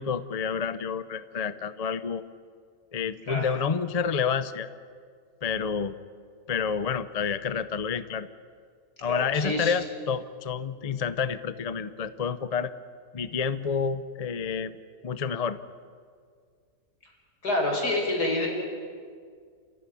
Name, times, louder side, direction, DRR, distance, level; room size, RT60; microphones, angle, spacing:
voice 1, 0.0-2.2 2.9-4.7 5.4-5.9 6.5-8.3 9.0-12.7 13.1-14.8 15.0-15.6, left 6 dB, 40° left, 13 dB, 0.5 m, -29 dB
voice 2, 9.1-9.8 17.4-18.5, left 2 dB, 75° left, 1 dB, 5.5 m, -27 dB
28.0 x 14.5 x 9.9 m, 2.1 s
omnidirectional pair, 1.7 m